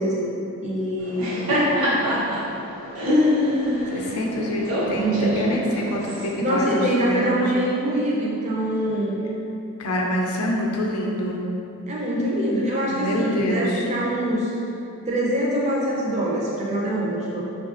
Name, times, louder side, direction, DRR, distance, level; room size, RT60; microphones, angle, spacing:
voice 1, 0.0-1.5 4.9-5.5 6.4-9.2 11.9-14.5 15.1-17.4, right 1 dB, 30° right, -5 dB, 0.4 m, -24 dB
Laughter, 1.0-6.3, left 1 dB, 85° right, 0.9 m, -24 dB
voice 2, 3.9-5.6 5.9-7.4 9.8-11.5 12.9-13.7, equal, 85° left, -1 dB, 0.5 m, -26 dB
3.9 x 2.3 x 2.4 m, 2.9 s
head